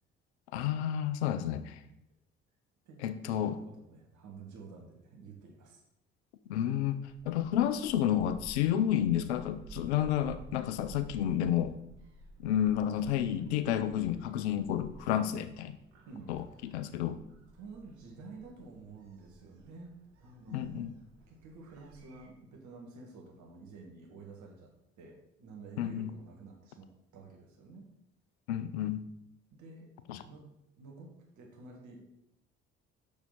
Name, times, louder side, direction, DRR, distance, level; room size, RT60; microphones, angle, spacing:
voice 1, 0.5-1.8 3.0-3.6 6.5-11.7 12.4-15.8 16.3-16.4 16.7-17.2 20.5-20.9 25.8-26.1 28.5-29.1 30.1-30.2, left 10 dB, 80° left, 12 dB, 0.6 m, -30 dB
voice 2, 2.8-5.8 16.1-16.8 17.5-19.9 20.2-21.0 21.3-24.7 25.0-27.9 29.5-29.9 30.3-30.5 30.8-32.0, right 4 dB, 65° right, 0 dB, 2.0 m, -50 dB
Gull seagull, 6.8-22.3, right 2 dB, 85° right, 1.2 m, -54 dB
7.0 x 6.3 x 4.1 m, 0.79 s
hypercardioid pair, 45°, 32 cm